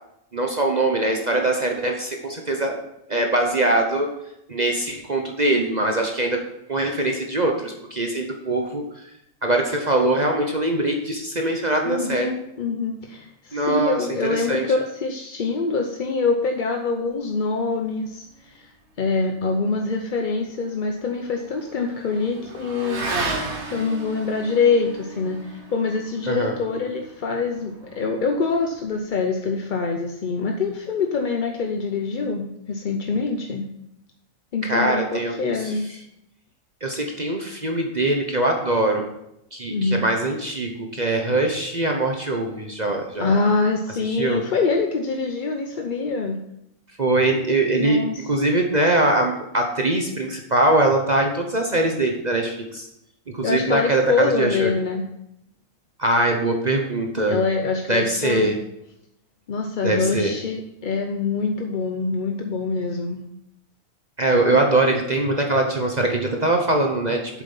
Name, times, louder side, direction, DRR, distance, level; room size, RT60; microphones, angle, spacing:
voice 1, 0.3-2.8 3.1-4.1 4.5-6.4 6.7-8.9 9.4-12.3 13.5-14.0 14.3-14.6 26.3-26.6 34.6-35.7 36.8-39.1 39.5-43.3 44.1-44.4 47.0-52.9 53.3-54.7 56.0-57.4 57.9-58.6 59.8-60.4 64.2-67.2, right 2 dB, 35° right, 2 dB, 1.0 m, -22 dB
voice 2, 11.9-18.7 19.0-23.0 23.6-33.7 34.5-35.9 39.7-40.0 43.2-46.4 47.8-48.3 53.4-55.0 57.3-58.5 59.5-63.2, left 4 dB, 45° left, 3 dB, 0.7 m, -25 dB
Motorcycle / Accelerating revving vroom, 20.1-28.9, right 3 dB, 60° right, 1.5 m, -35 dB
8.1 x 7.3 x 5.5 m, 0.82 s
omnidirectional pair, 1.4 m